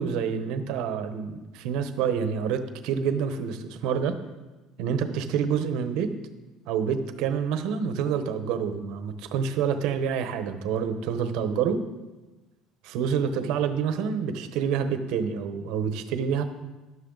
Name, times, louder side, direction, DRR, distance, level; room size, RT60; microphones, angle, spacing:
voice 1, 0.0-4.2 4.8-6.1 6.7-11.8 12.8-16.4, right 7 dB, 60° right, 9 dB, 1.0 m, -27 dB
13.0 x 11.0 x 3.9 m, 1.2 s
cardioid pair, 180°, 0 cm